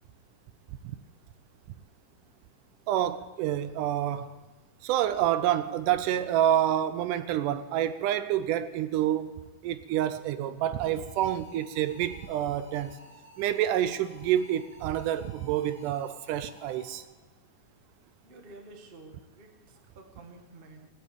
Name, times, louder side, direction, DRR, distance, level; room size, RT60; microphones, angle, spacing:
voice 1, 2.9-4.3 4.8-9.3 9.6-13.0 13.4-17.0, right 11 dB, 80° right, 2.1 m, -28 dB
sound 1, 10.9-17.2, left 1 dB, 5° right, 1.4 m, -54 dB
voice 2, 18.2-20.9, right 2 dB, 35° right, 0.9 m, -51 dB
18.5 x 8.0 x 8.6 m
omnidirectional pair, 3.9 m